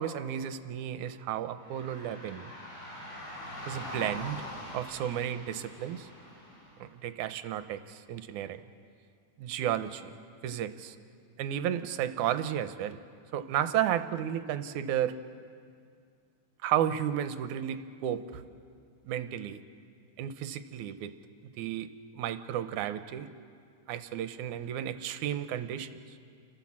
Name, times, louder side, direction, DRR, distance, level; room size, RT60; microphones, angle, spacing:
voice 1, 0.0-2.5 3.7-4.4 4.7-6.1 6.8-8.6 9.4-10.1 10.4-11.0 11.4-13.0 13.3-15.2 16.6-18.4 19.1-19.6 20.2-21.1 21.6-23.3 23.9-25.9, right 10 dB, 75° right, 10 dB, 2.0 m, -33 dB
sound 1, 1.6-6.8, left 1 dB, 50° left, 6.8 m, -43 dB
29.5 x 13.5 x 7.3 m, 2.2 s
omnidirectional pair, 3.8 m